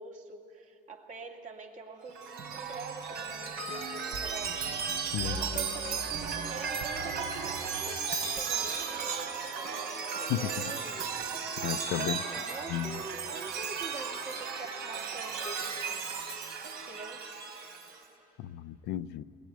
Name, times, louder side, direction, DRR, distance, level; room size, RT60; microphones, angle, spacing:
voice 1, 0.0-11.1 12.0-16.0 16.9-17.3, right 3 dB, 50° right, 2.5 m, -45 dB
Chime, 2.1-18.0, right 5 dB, 75° right, 3.7 m, -35 dB
voice 2, 10.3-10.7 11.6-12.2 12.7-13.0 18.4-19.2, left 12 dB, 85° left, 0.6 m, -33 dB
21.5 x 21.0 x 9.2 m
cardioid pair, 110°, 17 cm